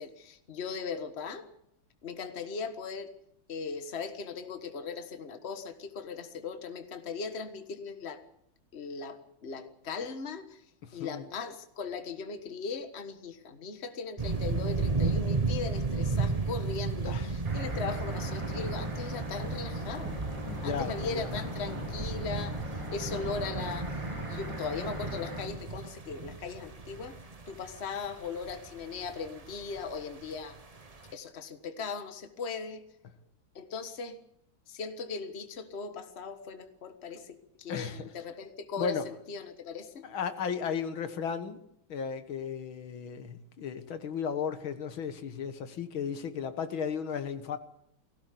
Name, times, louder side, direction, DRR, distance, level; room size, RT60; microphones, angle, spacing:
voice 1, 0.0-1.5 2.0-3.1 3.5-8.2 8.7-10.6 10.9-20.1 20.6-22.6 22.9-24.0 24.3-27.2 27.5-30.6 31.1-32.8 33.5-34.2 34.7-40.0, left 5 dB, 35° left, 1.6 m, -38 dB
voice 2, 10.8-11.2 17.1-17.3 20.5-21.4 21.7-21.9 37.7-38.1 38.8-39.0 40.0-41.6 41.9-47.6, left 6 dB, 85° left, 2.3 m, -35 dB
sound 1, 14.2-31.1, right 4 dB, 25° right, 1.1 m, -34 dB
sound 2, 17.4-25.5, equal, 65° right, 6.2 m, -40 dB
19.5 x 16.5 x 8.5 m
omnidirectional pair, 2.2 m